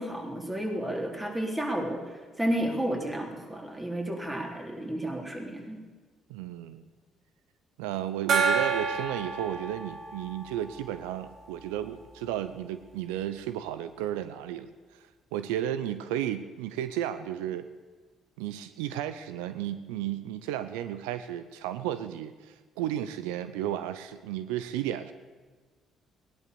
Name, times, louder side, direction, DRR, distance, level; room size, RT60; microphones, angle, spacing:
voice 1, 0.0-2.1 2.4-5.8, right 1 dB, 10° right, 1 dB, 3.9 m, -31 dB
voice 2, 6.3-6.9 7.8-17.7 18.4-25.1, right 11 dB, 85° right, 12 dB, 0.6 m, -33 dB
Gong, 8.3-11.5, right 5 dB, 65° right, 2.4 m, -29 dB
18.0 x 11.0 x 6.9 m, 1.4 s
hypercardioid pair, 55°, 0 cm